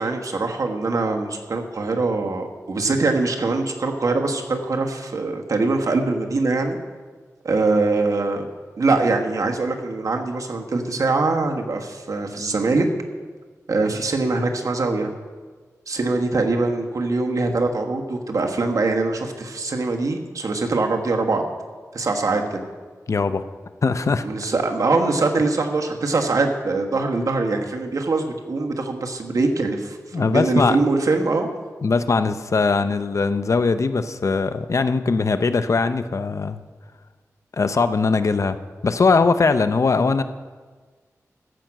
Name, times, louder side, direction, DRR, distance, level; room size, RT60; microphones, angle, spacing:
voice 1, 0.0-6.8 7.4-8.5 8.8-12.9 13.7-15.1 15.9-21.4 21.9-22.7 24.2-31.5, right 3 dB, 70° right, 3 dB, 1.4 m, -23 dB
voice 2, 23.1-23.4 23.8-24.3 30.1-30.8 31.8-36.6 37.5-38.6 38.8-40.2, left 4 dB, 60° left, 11 dB, 0.6 m, -20 dB
14.5 x 6.0 x 7.6 m, 1.5 s
wide cardioid pair, 70°, 6 cm